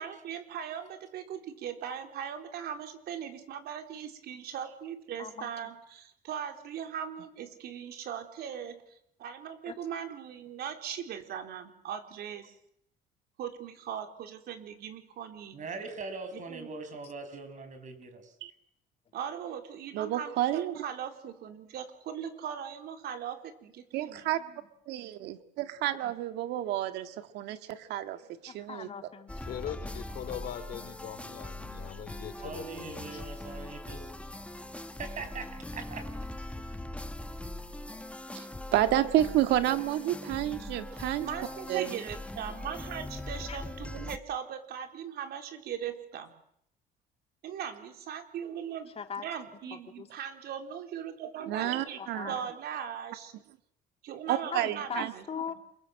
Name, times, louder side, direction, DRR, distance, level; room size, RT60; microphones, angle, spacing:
voice 1, 0.0-12.5 13.4-15.6 16.3-16.7 19.1-24.5 41.2-46.3 47.4-48.9 49.2-52.0 52.3-53.3 54.0-55.2, right 8 dB, 70° right, 5 dB, 4.1 m, -39 dB
voice 2, 5.2-5.7 9.7-9.8 28.5-30.5 43.5-43.6 49.0-49.2 49.6-50.1 51.7-52.5 54.5-55.6, left 7 dB, 35° left, 6 dB, 2.9 m, -41 dB
voice 3, 15.5-18.3 32.4-34.1 35.0-36.3 36.6-36.7, right 4 dB, 45° right, 8 dB, 6.2 m, -41 dB
voice 4, 19.9-20.7 23.9-24.4 24.9-28.2 28.4-28.9 38.3-38.5 38.7-41.3 41.7-41.9 51.5-52.3 54.3-55.1, right 13 dB, 85° right, 9 dB, 1.9 m, -30 dB
sound 1, 29.3-44.2, left 1 dB, 5° left, 1.6 m, -41 dB
voice 5, 29.5-33.1, left 10 dB, 65° left, 10 dB, 3.5 m, -41 dB
28.0 x 23.0 x 7.8 m, 0.72 s
cardioid pair, 110°, 17 cm